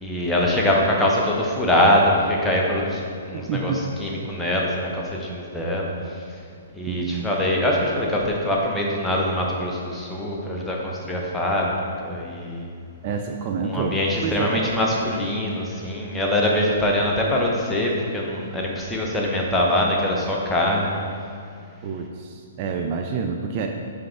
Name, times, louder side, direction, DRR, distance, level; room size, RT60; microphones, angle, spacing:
voice 1, 0.0-3.0 3.3-6.4 6.7-11.8 12.0-12.8 13.6-21.0, left 1 dB, 5° left, -3 dB, 0.8 m, -23 dB
voice 2, 3.3-3.8 6.9-7.3 13.0-14.7 21.8-23.7, right 5 dB, 35° right, 3 dB, 0.4 m, -28 dB
8.6 x 3.5 x 3.4 m, 2.3 s
figure-of-eight pair, 120°, 0 cm